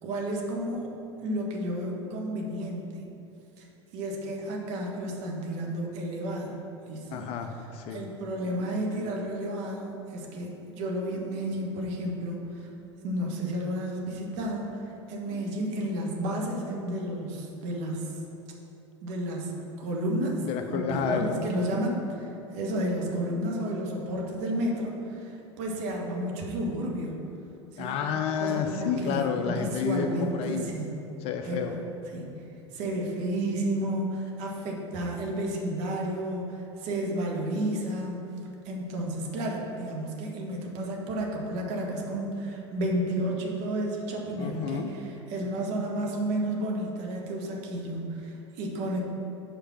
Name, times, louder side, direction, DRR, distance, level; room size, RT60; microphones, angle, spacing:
voice 1, 0.0-0.9 1.2-3.0 3.6-3.7 3.9-6.6 6.9-7.2 7.9-12.7 13.0-18.2 19.0-20.4 20.7-27.2 27.7-27.9 28.4-30.9 31.4-31.8 32.1-32.3 32.7-38.3 38.6-49.0, right 1 dB, 45° right, 0 dB, 1.2 m, -32 dB
voice 2, 7.1-8.0 20.4-21.3 27.8-30.7 31.2-31.8 44.4-44.9, left 7 dB, 40° left, 6 dB, 0.5 m, -30 dB
5.3 x 5.0 x 5.8 m, 2.9 s
figure-of-eight pair, 80°, 16 cm